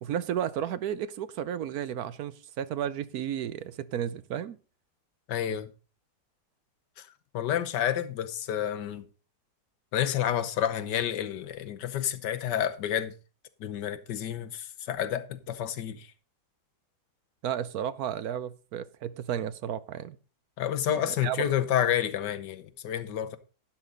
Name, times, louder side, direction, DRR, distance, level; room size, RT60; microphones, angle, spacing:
voice 1, 0.0-4.6 17.4-20.2 20.9-21.4, right 9 dB, 70° right, 1.1 m, -33 dB
voice 2, 5.3-5.7 7.3-9.0 9.9-13.1 13.6-16.1 20.6-23.4, left 10 dB, 85° left, 1.5 m, -29 dB
12.0 x 10.0 x 3.8 m
omnidirectional pair, 1.8 m